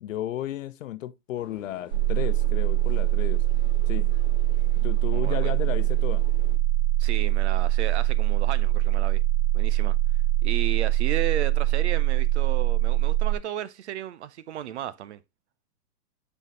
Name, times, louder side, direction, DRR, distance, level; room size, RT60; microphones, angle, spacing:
voice 1, 0.0-3.4 3.9-4.1 4.8-6.2, left 12 dB, 55° left, 0.6 m, -34 dB
sound 1, 1.3-6.6, left 3 dB, 10° left, 1.9 m, -49 dB
sound 2, 1.9-13.4, right 15 dB, 70° right, 3.1 m, -23 dB
voice 2, 5.1-5.5 7.0-9.2 9.5-9.9 10.4-15.2, right 10 dB, 45° right, 0.6 m, -34 dB
8.2 x 5.6 x 3.1 m
hypercardioid pair, 150°, 47 cm